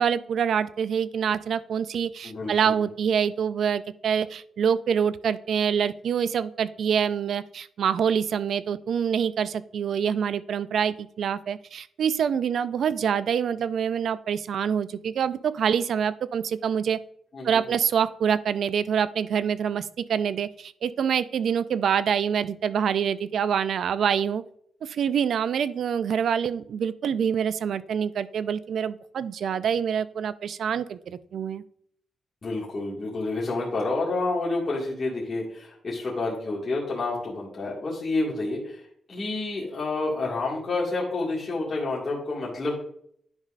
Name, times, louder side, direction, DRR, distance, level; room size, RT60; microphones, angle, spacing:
voice 1, 0.0-17.0 17.4-24.4 24.8-31.6, right 7 dB, 70° right, 15 dB, 0.4 m, -26 dB
voice 2, 2.2-2.8 17.3-17.6 32.4-42.8, left 2 dB, 35° left, -5 dB, 1.9 m, -29 dB
10.5 x 5.3 x 2.5 m, 0.67 s
cardioid pair, 115°, 0 cm